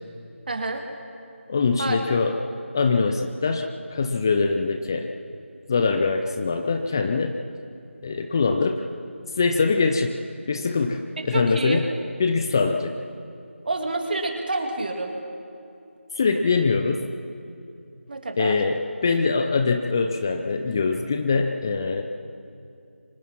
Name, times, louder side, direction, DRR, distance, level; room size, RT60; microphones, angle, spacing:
voice 1, 0.5-0.8 1.8-2.0 11.2-11.8 13.6-15.1 18.1-18.6, right 2 dB, 45° right, 3 dB, 2.7 m, -28 dB
voice 2, 1.5-2.4 2.7-5.1 5.7-7.4 8.0-8.8 9.3-10.2 10.5-11.8 12.2-12.9 16.1-17.1 18.4-22.0, left 4 dB, 15° left, 6 dB, 0.5 m, -23 dB
24.5 x 18.5 x 5.9 m, 2.6 s
figure-of-eight pair, 170°, 7 cm